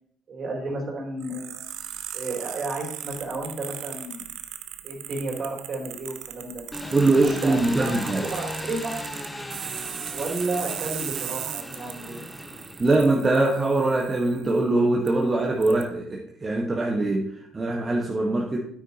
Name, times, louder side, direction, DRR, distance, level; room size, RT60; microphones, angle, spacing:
voice 1, 0.3-1.7 2.1-4.3 4.8-6.6 7.2-7.9 8.3-8.8 10.1-12.2, right 2 dB, 50° right, -1 dB, 3.4 m, -32 dB
sound 1, 1.2-14.6 15.1-15.2 15.6-15.8, right 11 dB, 70° right, 0.7 m, -38 dB
Engine, 6.7-13.2, left 1 dB, 5° left, 1.1 m, -37 dB
voice 2, 6.9-8.2 8.8-9.0 12.8-18.7, right 2 dB, 30° right, -1 dB, 1.4 m, -22 dB
9.2 x 9.1 x 2.9 m, 0.69 s
hypercardioid pair, 60°, 0 cm